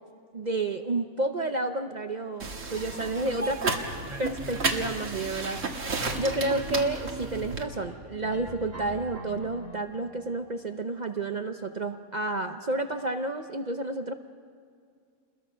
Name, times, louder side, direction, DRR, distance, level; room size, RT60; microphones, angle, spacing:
voice 1, 0.3-3.8 4.2-5.6 6.2-14.1, right 2 dB, 40° right, 7 dB, 0.7 m, -30 dB
sound 1, 2.4-7.6, right 3 dB, 60° right, 2.0 m, -33 dB
sound 2, 2.7-9.9, right 1 dB, 10° right, 1.3 m, -40 dB
28.5 x 21.5 x 5.7 m, 2.2 s
omnidirectional pair, 1.5 m